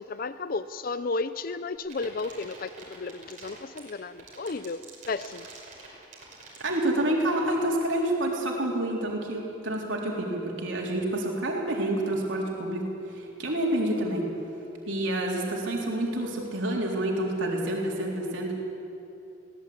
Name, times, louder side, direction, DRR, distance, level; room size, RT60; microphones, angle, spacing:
voice 1, 0.0-5.5, left 3 dB, 45° left, 13 dB, 0.5 m, -33 dB
sound 1, 1.8-7.5, right 4 dB, 40° right, 5.8 m, -46 dB
voice 2, 6.6-12.8 13.1-14.3 14.9-18.5, right 1 dB, 75° right, -1 dB, 3.8 m, -28 dB
22.5 x 18.0 x 8.7 m, 2.8 s
head